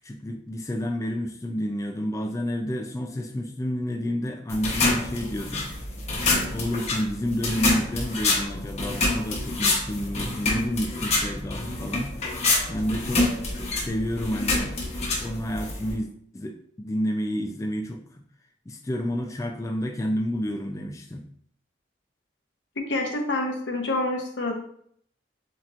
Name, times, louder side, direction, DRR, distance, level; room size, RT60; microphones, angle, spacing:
voice 1, 0.0-5.7 6.5-13.3 13.8-14.8 15.2-18.2 18.7-21.2, equal, 15° left, 3 dB, 0.3 m, -30 dB
sound 1, 4.5-16.0, left 2 dB, 35° left, 0.9 m, -27 dB
voice 2, 22.8-24.5, left 2 dB, 80° left, 2 dB, 1.0 m, -27 dB
7.3 x 2.9 x 2.5 m, 0.66 s
head